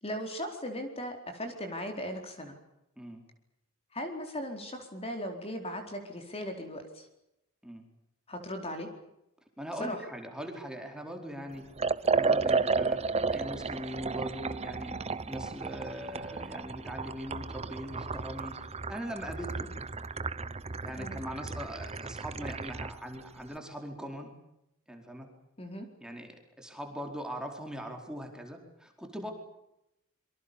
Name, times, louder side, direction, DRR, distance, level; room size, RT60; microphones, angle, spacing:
voice 1, 0.0-2.6 3.9-7.1 8.3-8.9 9.8-10.0 21.0-21.2 25.6-25.9, equal, 30° left, 5 dB, 4.4 m, -38 dB
voice 2, 9.6-11.7 12.0-15.0 15.3-19.7 20.8-24.3 24.9-25.3 26.0-29.3, equal, 5° right, 3 dB, 4.6 m, -41 dB
Liquid, 11.8-23.0, right 4 dB, 30° right, 0.9 m, -33 dB
27.5 x 24.0 x 7.1 m, 0.86 s
head